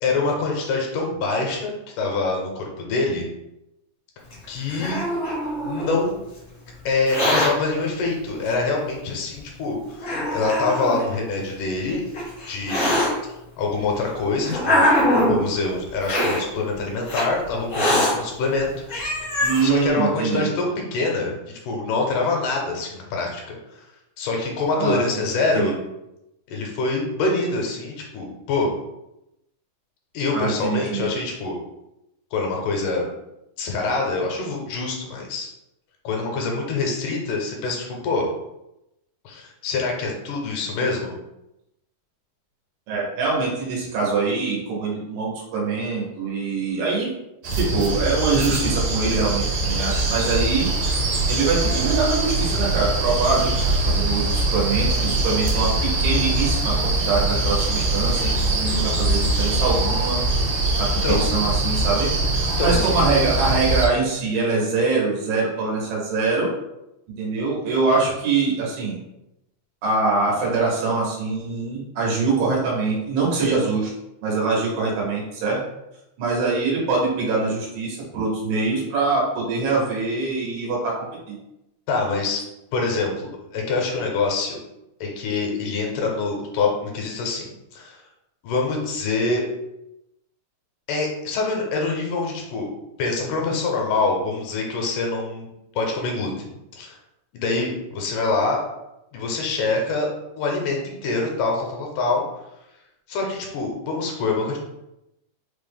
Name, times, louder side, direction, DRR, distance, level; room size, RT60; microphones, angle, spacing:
voice 1, 0.0-3.2 4.5-5.0 5.6-6.2 6.9-12.0 12.5-12.9 13.6-15.0 15.3-18.7 19.3-23.8 24.2-25.7 26.5-28.7 30.1-31.6 32.3-33.0 33.6-35.5 36.0-38.3 39.3-41.1 61.0-61.3 62.6-62.9 81.9-82.4 82.7-84.6 85.0-87.5 87.7-88.0 88.4-89.4 90.9-92.7 93.0-95.5 95.8-96.3 96.7-97.0 97.3-98.6 99.1-100.1 100.4-102.2 103.1-104.6, left 3 dB, 80° left, 0 dB, 2.2 m, -25 dB
Hiss, 4.3-6.0 6.9-7.5 8.5-8.6 9.4-9.5 10.0-11.0 11.9-13.1 13.9-15.4 16.0-16.4 17.1-17.2 17.7-18.1 18.6-18.7 18.9-19.6, left 1 dB, 55° left, 0.8 m, -22 dB
voice 2, 19.4-20.5 24.7-25.0 25.5-25.7 30.3-31.1 42.9-47.1 47.6-50.7 51.3-60.2 60.8-62.1 62.6-66.5 67.2-69.0 69.8-73.9 74.2-75.6 76.2-81.4, right 4 dB, 90° right, -3 dB, 2.5 m, -23 dB
sound 1, 47.4-63.9, right 2 dB, 75° right, 1.7 m, -22 dB
5.4 x 2.0 x 3.4 m, 0.90 s
omnidirectional pair, 3.8 m